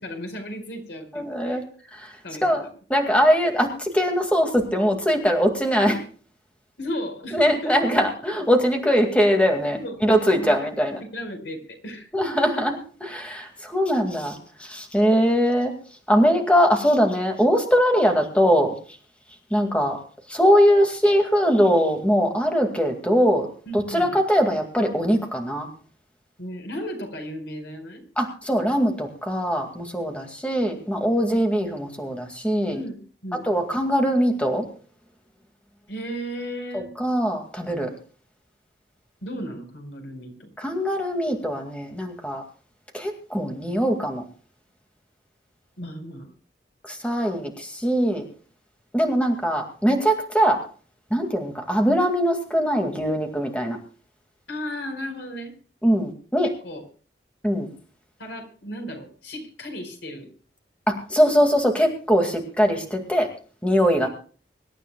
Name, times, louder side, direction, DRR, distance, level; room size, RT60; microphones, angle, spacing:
voice 1, 0.0-1.6 2.2-2.6 6.8-7.8 9.7-10.0 10.3-10.7 11.1-12.1 23.7-24.2 26.4-28.0 32.7-33.0 33.2-33.4 35.9-36.9 39.2-40.5 45.8-46.3 54.5-55.5 56.4-56.8 58.2-60.3, equal, 80° left, 3 dB, 4.8 m, -34 dB
voice 2, 1.1-1.6 1.9-2.1 2.4-6.0 7.3-11.0 12.1-15.7 16.1-18.7 19.5-20.0 20.3-23.5 23.7-25.7 28.2-32.8 33.4-34.7 36.7-37.9 40.6-42.4 42.9-44.2 46.8-48.3 48.9-50.6 51.1-53.8 55.8-56.5 57.4-57.7 60.9-63.3 63.6-64.1, equal, 5° left, 3 dB, 2.1 m, -21 dB
25.5 x 13.0 x 2.3 m, 0.41 s
head